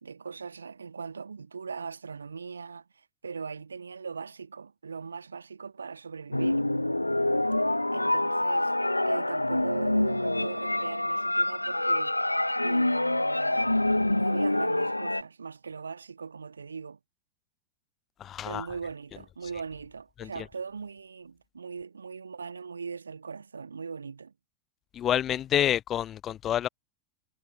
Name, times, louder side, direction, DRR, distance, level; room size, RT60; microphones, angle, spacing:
voice 1, 0.0-6.6 7.9-8.7 9.1-12.2 12.6-13.7 14.1-17.0 18.4-24.3, right 5 dB, 75° right, 1.7 m, -40 dB
sound 1, 6.3-15.2, left 1 dB, 85° left, 0.6 m, -26 dB
voice 2, 18.2-18.7 20.2-20.3 24.9-26.7, left 11 dB, 30° left, 0.3 m, -28 dB
figure-of-eight pair, 90°, 0 cm